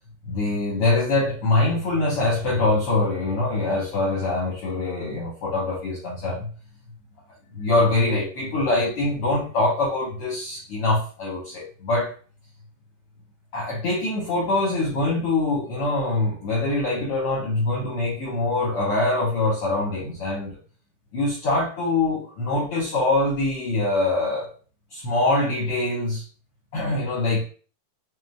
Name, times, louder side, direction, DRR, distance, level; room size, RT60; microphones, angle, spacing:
voice 1, 0.2-6.5 7.5-12.1 13.5-20.6 21.1-24.5 24.9-26.2 26.7-27.4, left 2 dB, 75° left, -5 dB, 1.3 m, -24 dB
5.8 x 2.1 x 3.3 m, 0.40 s
omnidirectional pair, 4.0 m